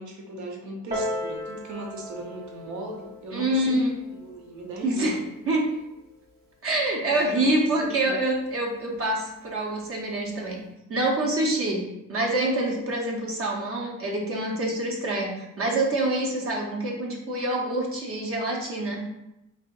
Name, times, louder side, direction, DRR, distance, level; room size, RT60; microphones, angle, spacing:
voice 1, 0.0-5.2 7.0-8.2, right 1 dB, 75° right, 0 dB, 0.9 m, -38 dB
Piano, 0.9-6.1 6.9-7.0, left 1 dB, 30° right, 1.1 m, -37 dB
voice 2, 3.3-3.9 4.8-5.2 5.5-5.6 6.6-10.6 10.9-19.0, right 1 dB, 50° right, -1 dB, 0.8 m, -26 dB
3.4 x 2.7 x 2.5 m, 0.91 s
cardioid pair, 90°, 30 cm